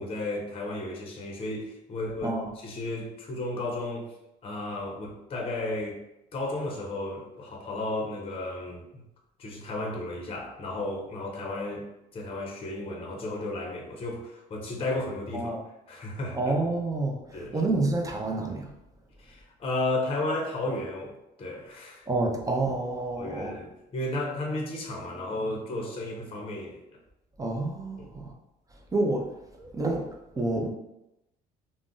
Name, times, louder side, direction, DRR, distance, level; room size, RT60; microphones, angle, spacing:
voice 1, 0.0-2.4 2.6-4.1 4.4-6.0 6.3-9.0 9.4-11.9 12.1-15.5 15.9-16.4 17.3-17.6 19.2-22.0 23.2-26.8 28.0-28.1, left 2 dB, 35° left, 0.6 m, -33 dB
voice 2, 16.4-18.7 22.1-23.6 27.4-28.3 28.9-30.7, right 2 dB, 20° right, 0.5 m, -29 dB
2.5 x 2.0 x 3.6 m
cardioid pair, 110°, 17 cm